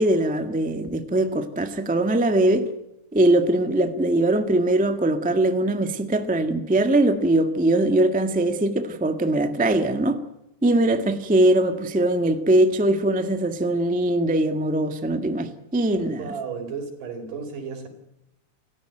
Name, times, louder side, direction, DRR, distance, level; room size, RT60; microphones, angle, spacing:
voice 1, 0.0-2.7 3.1-10.2 10.6-16.3, right 1 dB, 5° right, 8 dB, 0.6 m, -21 dB
voice 2, 16.2-17.9, right 5 dB, 85° right, 6 dB, 5.6 m, -33 dB
28.5 x 14.5 x 9.0 m, 0.87 s
omnidirectional pair, 3.6 m